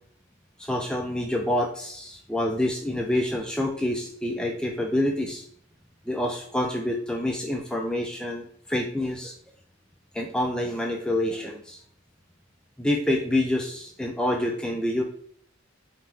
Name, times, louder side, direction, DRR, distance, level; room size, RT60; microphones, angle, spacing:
voice 1, 0.6-5.4 6.1-9.3 10.1-11.8 12.8-15.0, left 1 dB, 5° left, 1 dB, 0.3 m, -27 dB
5.4 x 2.8 x 3.1 m, 0.64 s
head